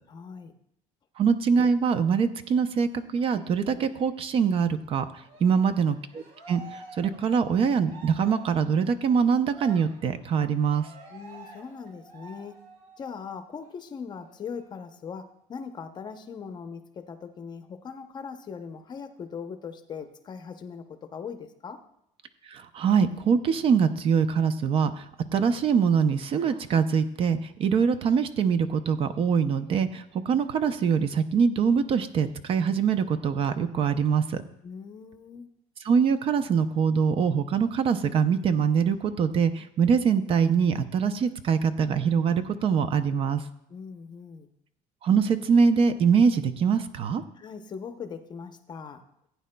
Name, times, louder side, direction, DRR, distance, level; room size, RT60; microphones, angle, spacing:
voice 1, 0.1-0.5 5.4-5.9 11.1-12.6 13.0-21.8 34.6-35.5 43.7-44.5 47.4-49.0, left 6 dB, 30° left, 8 dB, 0.7 m, -40 dB
voice 2, 1.2-10.9 22.4-34.4 35.8-43.4 45.0-47.2, right 6 dB, 40° right, 11 dB, 0.5 m, -24 dB
Cheering, 5.2-13.2 13.6-13.8 14.1-15.1, right 3 dB, 70° right, 3.5 m, -49 dB
16.0 x 9.3 x 2.2 m, 0.77 s
cardioid pair, 155°, 15 cm